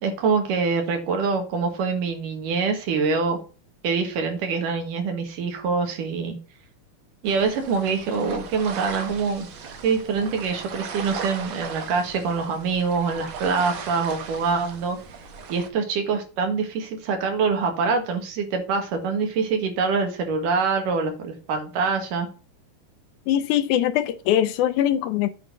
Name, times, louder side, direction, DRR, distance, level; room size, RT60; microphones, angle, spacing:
voice 1, 0.0-3.4 3.8-6.4 7.2-9.5 9.8-15.0 15.5-22.3, right 5 dB, 80° right, 3.2 m, -25 dB
sound 1, 7.3-15.7, right 6 dB, 60° right, 1.3 m, -37 dB
voice 2, 23.3-25.3, left 11 dB, 80° left, 1.9 m, -22 dB
8.8 x 4.0 x 5.9 m
omnidirectional pair, 3.7 m